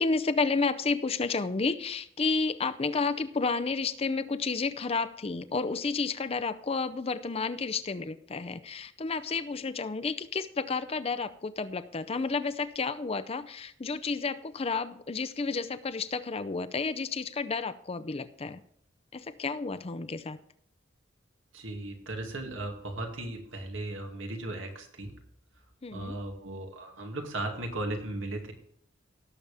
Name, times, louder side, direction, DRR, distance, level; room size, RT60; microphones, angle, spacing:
voice 1, 0.0-18.6 19.1-20.4 25.8-26.2, left 4 dB, 30° left, 12 dB, 0.5 m, -31 dB
voice 2, 21.5-25.1 25.9-28.5, right 2 dB, 85° right, 3 dB, 2.2 m, -36 dB
17.5 x 7.0 x 3.5 m, 0.68 s
head